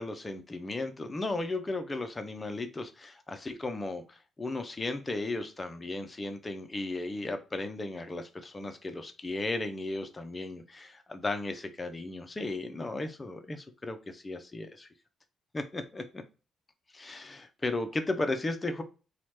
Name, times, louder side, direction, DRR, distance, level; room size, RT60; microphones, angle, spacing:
voice 1, 0.0-14.9 15.5-16.2 16.9-18.8, left 2 dB, 20° left, 7 dB, 0.4 m, -35 dB
2.8 x 2.1 x 3.1 m, 0.34 s
cardioid pair, 90°, 0 cm